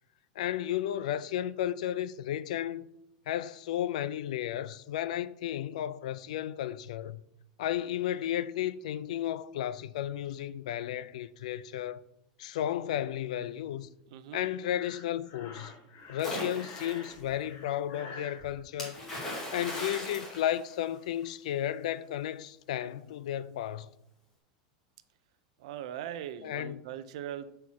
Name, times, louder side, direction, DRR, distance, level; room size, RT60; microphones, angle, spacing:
voice 1, 0.4-2.9 3.3-7.2 7.6-12.0 12.4-13.9 14.3-15.7 16.1-19.0 19.5-23.9 26.4-26.8, left 11 dB, 75° left, 0.4 m, -33 dB
voice 2, 14.1-14.5 19.6-19.9 25.6-27.5, right 10 dB, 65° right, 0.7 m, -40 dB
Breathing, 14.7-18.5, left 4 dB, 35° left, 1.4 m, -48 dB
Splash splatter, 16.2-17.1 18.8-21.2, left 1 dB, 15° left, 2.2 m, -38 dB
7.0 x 4.5 x 6.3 m
supercardioid pair, 160°, 4 cm